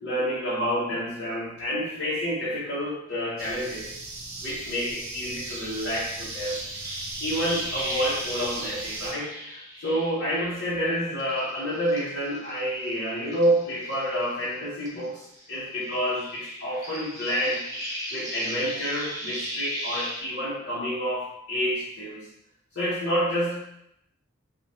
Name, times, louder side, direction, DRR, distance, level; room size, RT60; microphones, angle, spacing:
voice 1, 0.0-3.9 4.4-6.6 7.2-17.6 18.1-22.2 22.7-23.6, equal, 55° left, -9 dB, 0.8 m, -28 dB
sound 1, 3.4-9.1, right 3 dB, 85° right, 0.7 m, -37 dB
sound 2, 5.4-10.8 11.2-14.5 14.8-20.2, equal, 15° right, 0.7 m, -37 dB
3.0 x 2.1 x 2.7 m, 0.79 s
head